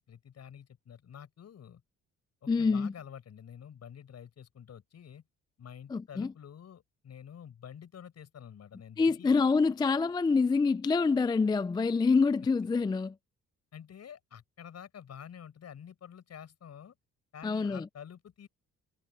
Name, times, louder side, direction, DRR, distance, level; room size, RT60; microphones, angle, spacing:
voice 1, 0.0-1.8 2.4-5.2 5.6-9.3 13.7-17.0 17.3-18.5, left 8 dB, 60° left, 5.9 m, -49 dB
voice 2, 2.5-2.9 5.9-6.3 9.0-13.1 17.4-17.9, left 4 dB, 15° left, 0.3 m, -26 dB
cardioid pair, 90°, 30 cm